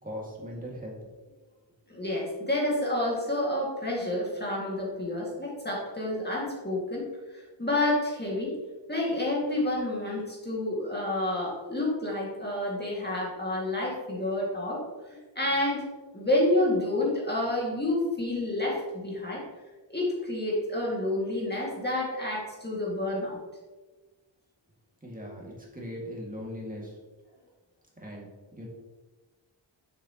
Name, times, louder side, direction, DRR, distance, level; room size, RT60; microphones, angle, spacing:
voice 1, 0.0-1.0 25.0-27.0 28.0-28.7, equal, 20° right, -3 dB, 2.0 m, -39 dB
voice 2, 1.9-7.1 7.3-8.5 8.9-15.9 16.1-19.4 19.9-23.4, left 1 dB, 20° left, -4 dB, 2.0 m, -29 dB
7.1 x 6.5 x 2.9 m, 1.2 s
wide cardioid pair, 85°, 46 cm